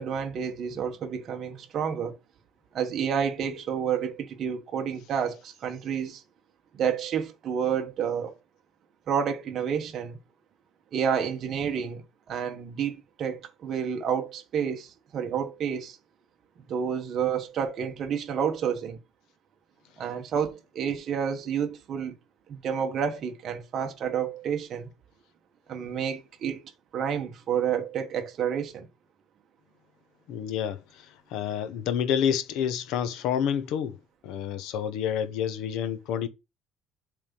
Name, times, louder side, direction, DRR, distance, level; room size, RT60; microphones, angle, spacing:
voice 1, 0.0-2.2 2.7-6.2 6.7-8.4 9.1-10.2 10.9-12.0 12.3-16.0 16.6-19.0 20.0-22.1 22.5-24.9 25.7-26.6 26.9-28.9, right 7 dB, 40° right, 1.1 m, -29 dB
voice 2, 30.3-31.1 31.3-34.0 34.2-36.3, left 8 dB, 65° left, 1.0 m, -28 dB
7.4 x 3.5 x 5.4 m
cardioid pair, 165°, 0 cm